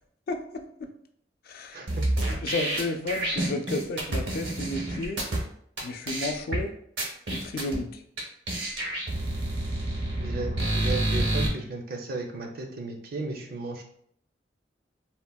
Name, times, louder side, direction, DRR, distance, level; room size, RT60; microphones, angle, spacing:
voice 1, 0.3-0.9 1.5-1.8 2.4-5.2 5.8-6.7 7.3-8.0, left 2 dB, 55° left, 6 dB, 0.3 m, -32 dB
sound 1, 1.9-5.4 5.8-5.9 6.1-6.6 7.0-7.8 8.2-8.3 8.5-11.5, right 1 dB, 85° right, 0.7 m, -28 dB
voice 2, 10.2-13.8, right 3 dB, 55° right, 3 dB, 0.5 m, -34 dB
3.6 x 2.1 x 2.2 m, 0.66 s
head